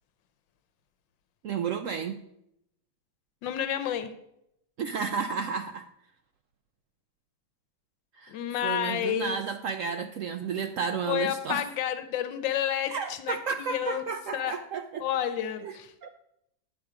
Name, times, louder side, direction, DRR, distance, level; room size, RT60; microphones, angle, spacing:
voice 1, 1.4-2.2 4.8-5.8 8.2-8.3 8.6-11.6 12.9-15.0 15.6-15.8 16.0-16.1, right 6 dB, 85° right, 7 dB, 0.7 m, -32 dB
voice 2, 3.4-4.1 8.3-9.4 11.1-14.0 14.3-14.5 15.0-15.9, left 10 dB, 85° left, 10 dB, 1.4 m, -30 dB
10.5 x 6.1 x 4.9 m, 0.80 s
omnidirectional pair, 1.9 m